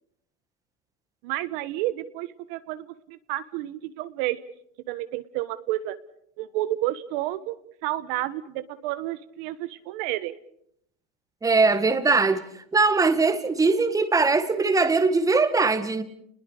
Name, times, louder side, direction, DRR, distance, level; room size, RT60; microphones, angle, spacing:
voice 1, 1.2-4.4 4.9-5.9 6.4-7.5 7.8-10.3, right 15 dB, 60° right, 1.5 m, -30 dB
voice 2, 11.4-16.0, right 3 dB, 10° right, 2.0 m, -21 dB
30.0 x 21.0 x 6.7 m
supercardioid pair, 120°, 32 cm